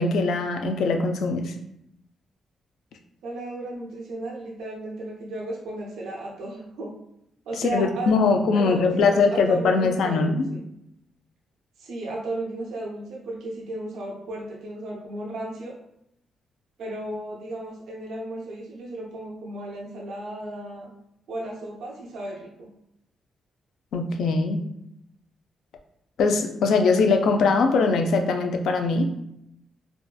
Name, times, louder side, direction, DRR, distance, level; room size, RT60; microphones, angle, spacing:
voice 1, 0.0-1.5 7.6-10.5 23.9-24.6 26.2-29.1, left 4 dB, 80° left, 5 dB, 0.3 m, -21 dB
voice 2, 3.2-6.9 7.5-10.7 11.8-15.7 16.8-20.9 21.3-22.7, right 1 dB, 90° right, -3 dB, 0.6 m, -35 dB
2.7 x 2.1 x 2.2 m, 0.78 s
cardioid pair, 135°, 0 cm